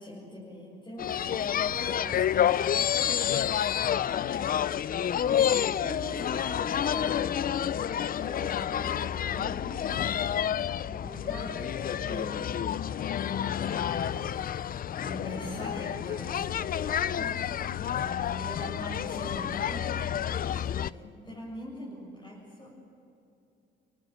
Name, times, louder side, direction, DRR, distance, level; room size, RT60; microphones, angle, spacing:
voice 1, 0.0-3.0 5.2-9.6 10.1-14.4 15.0-17.4 17.9-19.9 20.5-22.7, left 1 dB, 25° left, -5 dB, 7.7 m, -42 dB
sound 1, 1.0-20.9, left 9 dB, 45° left, 0.5 m, -29 dB
voice 2, 3.3-4.8 17.6-18.1 20.3-21.2, left 10 dB, 70° left, 14 dB, 0.9 m, -42 dB
30.0 x 18.0 x 7.8 m, 2.7 s
cardioid pair, 90°, 20 cm